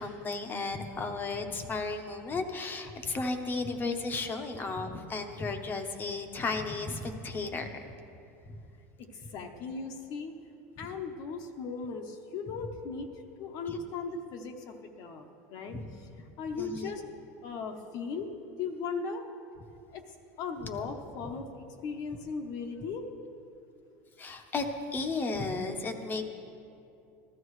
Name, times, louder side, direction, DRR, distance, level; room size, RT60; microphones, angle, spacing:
voice 1, 0.0-7.9 8.4-8.5 13.7-13.8 15.7-15.8 16.6-16.9 24.2-26.2, left 3 dB, 25° left, 6 dB, 0.9 m, -34 dB
voice 2, 9.0-10.3 10.8-13.1 13.4-15.8 16.4-17.0 17.4-18.3 18.6-19.2 19.9-20.0 20.4-23.1, left 5 dB, 55° left, 3 dB, 0.9 m, -37 dB
15.0 x 13.0 x 3.2 m, 2.6 s
supercardioid pair, 125°, 8 cm